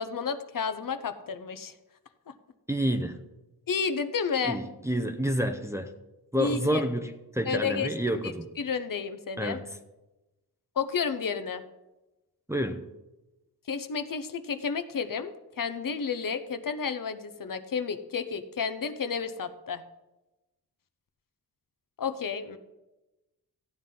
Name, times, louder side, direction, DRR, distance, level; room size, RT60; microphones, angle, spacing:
voice 1, 0.0-1.7 3.7-4.6 6.4-6.8 7.4-7.9 8.2-9.6 10.8-11.6 13.7-15.3 15.6-19.8 22.0-22.6, left 5 dB, 55° left, 9 dB, 0.8 m, -31 dB
voice 2, 2.7-3.2 4.4-5.9 6.3-8.5 9.4-9.7 12.5-12.9, equal, 5° right, 5 dB, 0.6 m, -29 dB
14.5 x 9.3 x 3.8 m, 1.0 s
wide cardioid pair, 105°, 40 cm